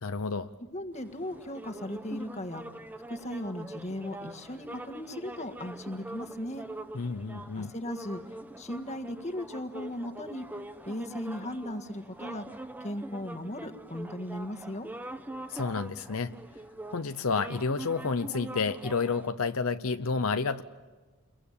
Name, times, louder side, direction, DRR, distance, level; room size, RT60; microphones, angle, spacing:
voice 1, 0.0-0.5 6.9-7.7 15.5-16.3 16.9-20.6, left 4 dB, 70° left, 9 dB, 0.8 m, -30 dB
voice 2, 0.7-2.6 3.1-6.7 7.6-8.2 8.6-10.5 10.9-12.5 12.8-14.9, left 1 dB, 30° left, 7 dB, 1.7 m, -37 dB
sound 1, 0.9-19.3, right 1 dB, 10° right, 0.9 m, -44 dB
29.5 x 23.0 x 8.7 m, 1.3 s
head